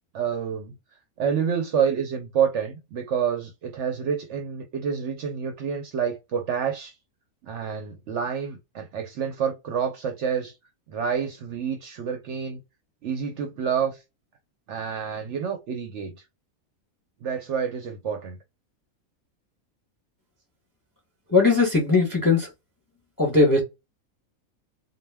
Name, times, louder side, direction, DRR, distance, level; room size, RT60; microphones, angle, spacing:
voice 1, 0.1-0.8 1.2-6.9 7.4-10.5 10.9-12.6 13.0-14.0 14.7-16.2 17.2-18.4, right 7 dB, 65° right, 0.8 m, -28 dB
voice 2, 21.3-22.5 23.2-23.6, left 3 dB, 20° left, 0.6 m, -19 dB
2.2 x 2.2 x 3.3 m
omnidirectional pair, 1.5 m